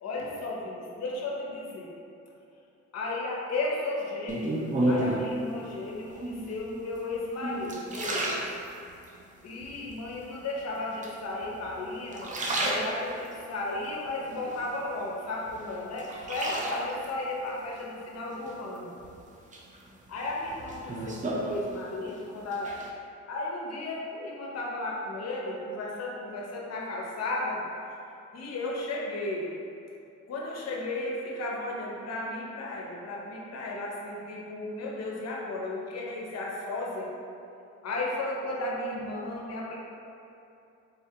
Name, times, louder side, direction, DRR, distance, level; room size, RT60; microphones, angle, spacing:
voice 1, 0.0-1.9 2.9-8.3 9.4-18.9 20.1-22.7 23.3-27.6 28.3-29.5 30.3-37.1 37.8-39.8, left 2 dB, 55° left, -3 dB, 0.7 m, -34 dB
sound 1, 4.3-5.4 6.1-6.6 7.2-9.1 9.6-10.2 11.0-11.7 12.0-13.4 13.8-15.1 15.5-17.1 18.5-19.1 19.5-22.1 22.4-22.9, right 1 dB, 25° right, 0.4 m, -32 dB
4.1 x 2.2 x 2.8 m, 2.6 s
cardioid pair, 90°, 30 cm